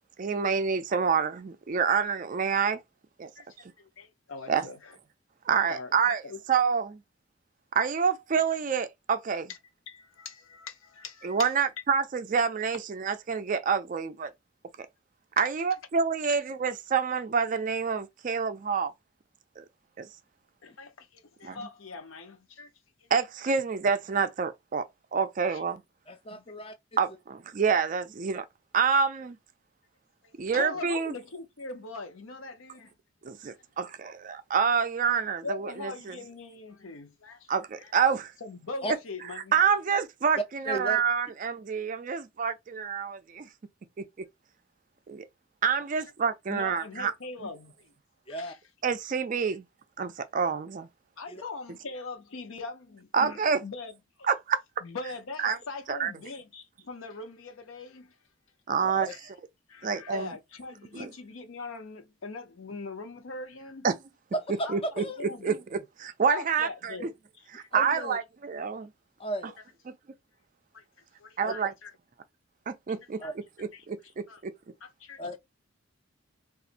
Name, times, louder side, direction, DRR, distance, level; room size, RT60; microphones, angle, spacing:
voice 1, 0.2-2.8 3.2-3.3 4.5-4.7 5.5-6.2 6.5-7.0 7.7-9.5 11.2-14.3 14.8-14.9 15.4-18.9 19.6-19.7 20.0-20.1 21.4-21.6 23.1-25.8 27.0-28.5 28.7-29.4 30.4-31.1 33.2-35.9 37.5-38.3 39.5-43.5 44.0-44.1 45.1-45.3 45.6-47.1 48.8-49.6 50.0-50.9 53.1-53.6 54.3-54.6 55.4-55.6 55.9-56.1 58.7-59.1 59.8-60.3 60.9-61.1 63.8-64.0 64.7-65.0 65.4-66.9 67.5-68.9 71.4-71.7 72.7-73.2 73.6-74.5, right 6 dB, 40° right, 0.3 m, -27 dB
voice 2, 3.4-5.0 5.7-6.4 9.5-9.6 9.9-11.7 15.4-15.5 20.6-22.7 23.0-23.1 23.5-23.6 25.4-25.6 26.3-26.4 30.2-32.9 35.4-37.5 37.8-37.9 38.4-39.6 46.5-48.0 48.3-48.6 51.2-54.3 54.8-58.2 59.1-59.3 59.7-63.9 64.6-65.6 66.3-68.1 70.7-70.8 71.2-71.9 72.9-73.4 73.7-74.4 74.8-75.2, left 3 dB, 70° left, 0.7 m, -42 dB
voice 3, 26.1-26.7 38.8-38.9 40.7-41.0 48.3-48.5 51.3-51.4 58.8-59.1 64.3-64.7 65.0-65.2 67.7-68.2 69.2-69.5 71.4-71.6 73.2-73.3 75.2-75.4, right 1 dB, 25° left, 0.5 m, -35 dB
4.1 x 2.4 x 2.5 m
head